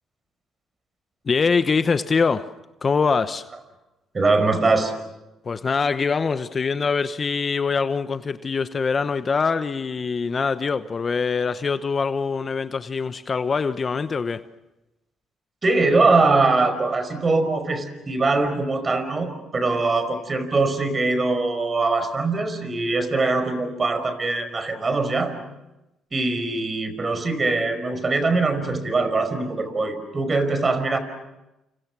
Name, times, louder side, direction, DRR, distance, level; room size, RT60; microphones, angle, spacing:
voice 1, 1.2-2.5 2.8-3.5 5.4-14.4, left 5 dB, 35° left, 11 dB, 1.0 m, -23 dB
voice 2, 4.1-4.9 15.6-25.3 26.1-31.0, right 3 dB, 30° right, 10 dB, 5.2 m, -22 dB
29.0 x 28.0 x 6.1 m, 0.96 s
cardioid pair, 85°, 0 cm